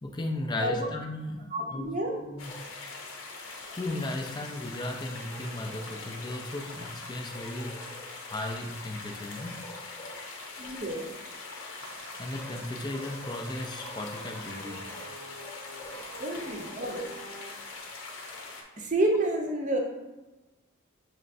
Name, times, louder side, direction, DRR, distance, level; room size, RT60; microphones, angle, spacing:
voice 1, 0.0-2.9 3.7-10.8 12.2-16.2, left 1 dB, 20° left, 3 dB, 0.4 m, -37 dB
voice 2, 0.5-0.9 1.5-2.2 10.6-11.0 16.2-17.1 18.8-19.8, right 1 dB, 35° right, 1 dB, 0.6 m, -29 dB
sound 1, 2.4-18.6, left 3 dB, 70° left, 0.8 m, -43 dB
sound 2, 11.8-17.5, right 1 dB, 70° right, 0.7 m, -48 dB
6.6 x 3.0 x 2.6 m, 1.1 s
head